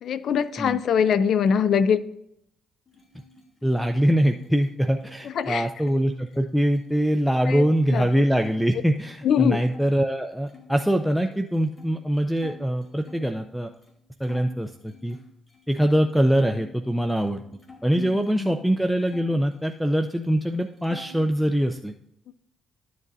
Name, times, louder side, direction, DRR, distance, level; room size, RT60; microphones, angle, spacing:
voice 1, 0.0-2.1 5.2-5.7 7.4-7.6 7.9-8.1 8.7-8.8 9.2-9.6 18.0-18.5 22.3-22.4, left 7 dB, 65° left, 15 dB, 0.4 m, -23 dB
sound 1, 2.9-8.6 8.9-9.9 10.5-13.3 13.8-13.9 14.2-16.7 17.0-18.7 19.1-20.2 20.4-21.3, left 3 dB, 30° left, 2.2 m, -50 dB
voice 2, 3.6-13.7 14.2-15.2 15.7-17.4 17.8-21.9, equal, ahead, 6 dB, 0.5 m, -23 dB
12.5 x 7.4 x 2.7 m, 0.77 s
cardioid pair, 90°, 0 cm